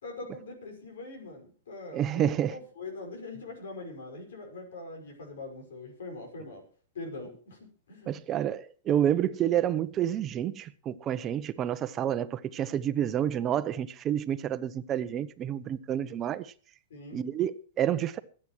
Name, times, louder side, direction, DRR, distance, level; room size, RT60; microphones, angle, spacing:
voice 1, 0.0-6.6 6.9-8.2 16.9-17.2, left 3 dB, 80° left, 5.6 m, -42 dB
voice 2, 1.9-2.6 8.1-16.5 17.1-18.2, right 10 dB, 30° right, 0.9 m, -29 dB
25.0 x 8.8 x 3.1 m
hypercardioid pair, 125°, 0 cm